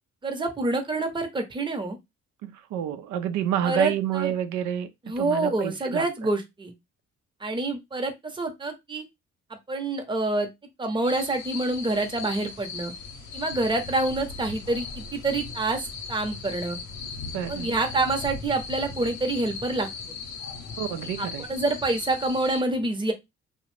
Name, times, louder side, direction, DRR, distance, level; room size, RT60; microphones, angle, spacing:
voice 1, 0.2-2.0 3.6-4.3 5.0-6.7 7.4-9.0 9.7-10.5 10.8-12.9 13.3-16.8 17.5-19.9 21.2-23.1, right 2 dB, 15° right, 0.7 m, -27 dB
voice 2, 2.4-4.9 5.2-6.1 17.3-17.7 20.8-21.5, right 10 dB, 90° right, 0.5 m, -29 dB
sound 1, 11.0-22.6, left 5 dB, 65° left, 0.7 m, -38 dB
2.5 x 2.0 x 3.1 m
cardioid pair, 90°, 30 cm